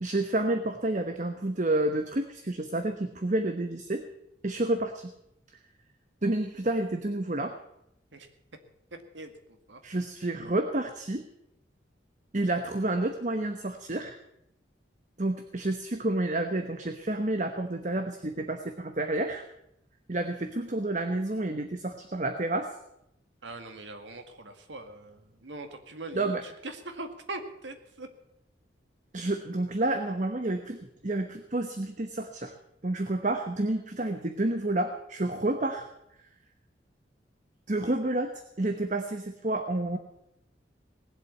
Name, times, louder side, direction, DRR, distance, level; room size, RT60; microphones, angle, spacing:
voice 1, 0.0-4.0 4.4-5.1 6.2-7.6 9.8-11.2 12.3-14.2 15.2-19.4 20.1-22.7 26.1-26.4 29.1-30.8 31.0-32.5 32.8-35.9 37.7-38.3 38.6-40.0, right 2 dB, 40° right, 7 dB, 1.0 m, -29 dB
voice 2, 8.9-9.8 23.4-28.1 37.8-37.9, right 2 dB, 90° right, 7 dB, 2.0 m, -42 dB
19.0 x 8.0 x 8.3 m, 0.79 s
head